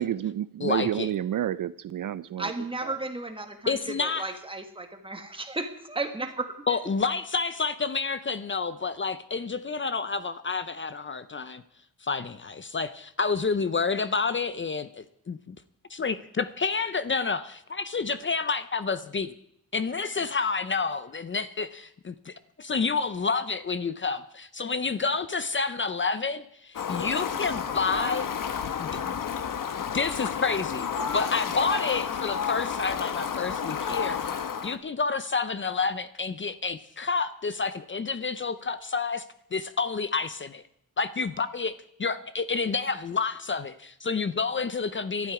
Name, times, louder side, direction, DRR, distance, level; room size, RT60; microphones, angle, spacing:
voice 1, 0.0-2.5 2.8-2.9, right 11 dB, 65° right, 0.5 m, -29 dB
voice 2, 0.6-1.1 3.7-4.3 6.7-11.6 12.0-15.6 15.9-19.3 19.7-28.3 28.8-29.1 29.9-34.2 34.6-39.2 39.5-40.6 41.0-41.7 42.0-45.3, left 4 dB, 35° left, 0.6 m, -29 dB
voice 3, 2.4-6.8 27.9-28.2, right 2 dB, 15° right, 1.6 m, -34 dB
Fowl, 26.7-34.8, left 7 dB, 65° left, 1.2 m, -31 dB
17.5 x 12.0 x 4.9 m
wide cardioid pair, 135°, 35 cm